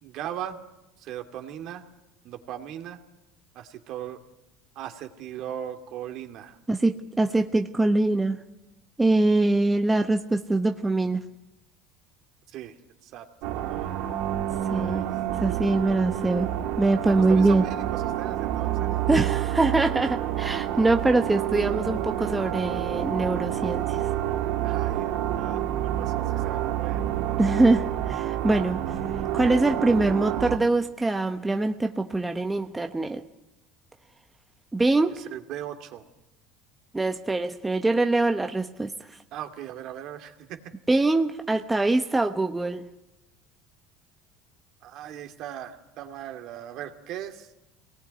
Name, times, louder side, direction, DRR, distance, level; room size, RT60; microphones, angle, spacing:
voice 1, 0.0-0.6 1.0-1.9 2.2-3.0 3.5-4.2 4.8-6.6 12.5-14.1 14.7-15.1 17.0-19.0 24.6-27.0 35.1-36.1 39.3-40.6 44.8-47.5, right 11 dB, 60° right, 6 dB, 2.5 m, -38 dB
voice 2, 6.7-8.4 9.0-11.2 14.7-15.1 15.4-16.5 16.8-17.6 19.1-24.1 27.4-28.8 29.3-33.2 34.7-35.1 36.9-38.9 40.9-42.9, right 2 dB, 10° right, 6 dB, 1.0 m, -23 dB
sound 1, 13.4-30.6, right 12 dB, 75° right, 2.2 m, -28 dB
23.0 x 19.0 x 9.7 m, 0.93 s
supercardioid pair, 115°, 0 cm